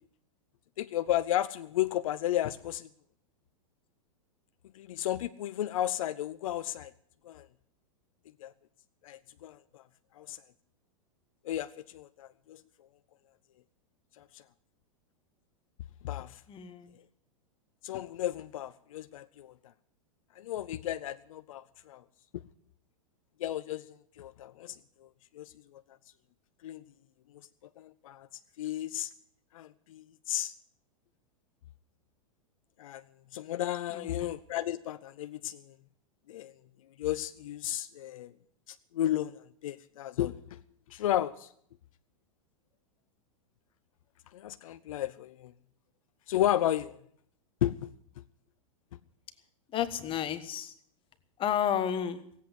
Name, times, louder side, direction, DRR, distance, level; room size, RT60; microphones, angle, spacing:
voice 1, 0.8-2.9 4.7-6.9 7.2-7.5 8.4-8.5 9.0-9.8 10.2-10.4 11.4-12.6 14.2-14.4 16.0-16.4 17.8-19.5 20.4-22.0 23.4-23.9 24.2-24.8 25.3-25.8 26.6-26.8 27.8-28.3 28.6-29.1 29.5-30.5 32.8-33.0 33.3-35.7 36.3-36.5 37.0-38.3 38.7-40.6 40.9-41.5 44.3-45.5 46.3-47.0 47.6-47.9, left 12 dB, 70° left, 12 dB, 0.6 m, -33 dB
voice 2, 16.5-16.9 33.9-34.3 49.7-50.7 51.4-52.2, left 9 dB, 30° left, 10 dB, 1.4 m, -31 dB
17.0 x 8.4 x 9.7 m, 0.67 s
hypercardioid pair, 115°, 18 cm